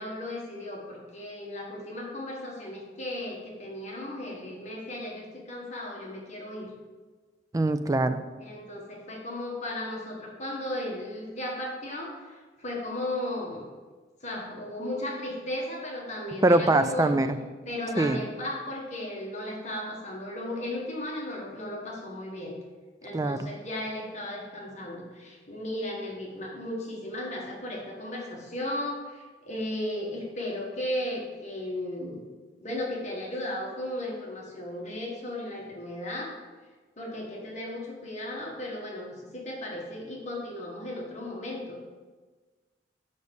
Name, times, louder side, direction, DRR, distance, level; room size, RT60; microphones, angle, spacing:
voice 1, 0.0-6.7 8.4-13.7 14.2-22.6 23.0-32.2 32.6-36.3 37.0-41.8, left 1 dB, 40° left, -2 dB, 1.6 m, -35 dB
voice 2, 7.5-8.2 16.4-17.4 18.0-18.2 23.1-23.5, right 2 dB, 20° right, 10 dB, 0.4 m, -23 dB
7.1 x 5.4 x 6.4 m, 1.3 s
head